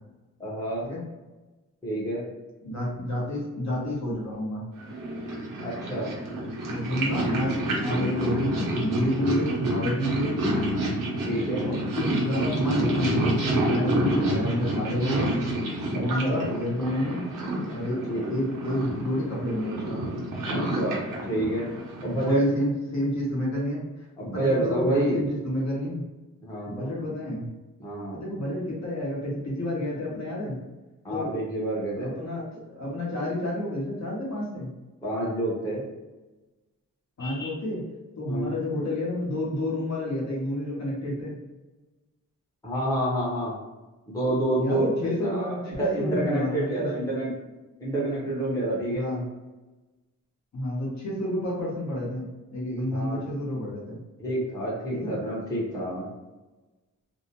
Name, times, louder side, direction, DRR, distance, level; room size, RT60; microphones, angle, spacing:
voice 1, 0.4-0.8 1.8-2.2 5.6-6.1 11.3-11.6 16.2-16.4 18.1-18.3 20.5-20.9 21.3-21.7 22.0-22.4 24.2-25.3 26.4-26.9 27.8-28.2 31.0-32.1 35.0-35.9 37.2-37.5 38.2-38.5 42.6-43.5 44.1-47.3 47.8-49.0 52.9-53.2 54.2-56.1, right 1 dB, 10° left, -6 dB, 0.6 m, -28 dB
voice 2, 2.6-4.6 6.7-10.6 11.6-15.3 15.9-17.3 17.7-20.0 20.5-20.7 22.1-26.0 26.6-27.5 28.1-30.6 31.1-31.4 32.0-34.7 37.2-37.8 38.2-41.4 44.6-47.1 48.9-49.2 50.5-54.0 54.9-55.2, left 1 dB, 55° left, -4 dB, 0.8 m, -29 dB
Purr, 4.8-22.4, right 1 dB, 90° right, 0.7 m, -29 dB
2.6 x 2.0 x 2.8 m, 1.1 s
wide cardioid pair, 165°, 32 cm